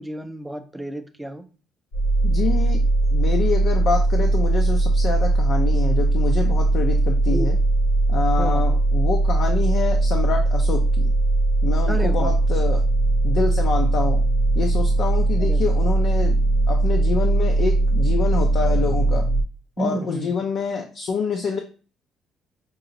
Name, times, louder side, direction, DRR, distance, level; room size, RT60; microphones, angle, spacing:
voice 1, 0.0-1.5 7.3-7.5 8.4-8.6 11.9-12.3 15.4-15.6 19.8-20.3, right 1 dB, 5° right, 6 dB, 0.5 m, -30 dB
sound 1, 1.9-19.4, right 2 dB, 90° left, 0.9 m, -19 dB
voice 2, 2.2-2.8 3.1-7.6 8.1-11.1 11.6-12.8 13.2-14.2 14.6-16.4 16.7-19.2 19.8-21.6, left 5 dB, 60° left, 3 dB, 0.6 m, -26 dB
5.3 x 2.8 x 2.6 m, 0.36 s
cardioid pair, 120°, 0 cm